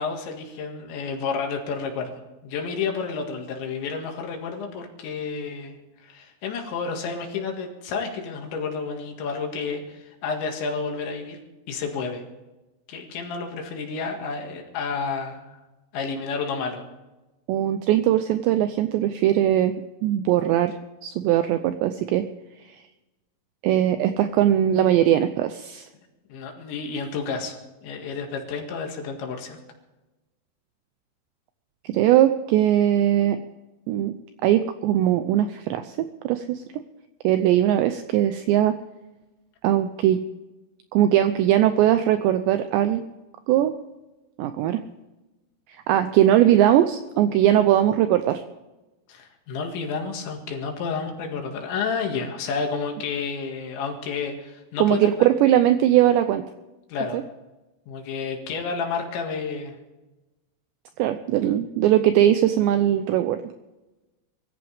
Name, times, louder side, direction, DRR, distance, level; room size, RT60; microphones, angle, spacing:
voice 1, 0.0-5.8 6.0-11.4 11.7-12.2 12.9-15.6 15.9-16.8 26.3-27.6 27.8-29.6 49.1-55.1 56.9-57.2 57.9-59.8, left 5 dB, 65° left, 2 dB, 4.1 m, -30 dB
voice 2, 17.5-20.8 21.0-22.3 22.7-22.8 23.6-25.9 31.8-33.4 33.9-34.1 34.4-36.6 37.2-38.8 39.6-40.2 40.9-43.0 43.5-43.7 44.4-44.8 45.9-48.4 54.8-56.4 57.1-57.2 61.0-63.4, right 12 dB, 85° right, 10 dB, 2.5 m, -20 dB
23.0 x 15.0 x 3.4 m, 1.1 s
omnidirectional pair, 5.8 m